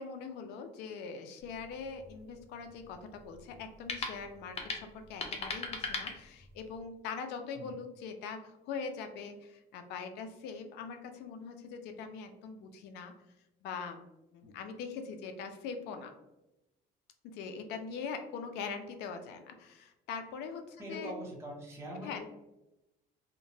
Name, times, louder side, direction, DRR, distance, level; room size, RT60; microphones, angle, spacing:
voice 1, 0.0-13.1 13.6-14.0 14.3-16.1 17.2-21.1 22.0-22.2, left 5 dB, 85° left, 7 dB, 0.4 m, -42 dB
sound 1, 1.4-6.8, left 4 dB, 40° left, 0.6 m, -41 dB
voice 2, 20.8-22.2, equal, 15° right, -3 dB, 0.7 m, -43 dB
2.8 x 2.1 x 2.6 m, 0.94 s
cardioid pair, 110°, 17 cm